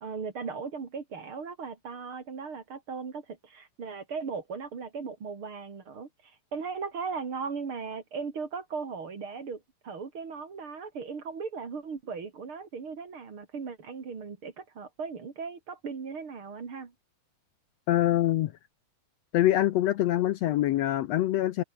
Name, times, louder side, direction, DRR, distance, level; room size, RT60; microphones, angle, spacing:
voice 1, 0.0-6.1 6.5-16.9, right 5 dB, 45° right, 3.3 m, -37 dB
voice 2, 17.9-18.5 19.3-21.6, left 14 dB, 70° left, 1.7 m, -24 dB
omnidirectional pair, 3.5 m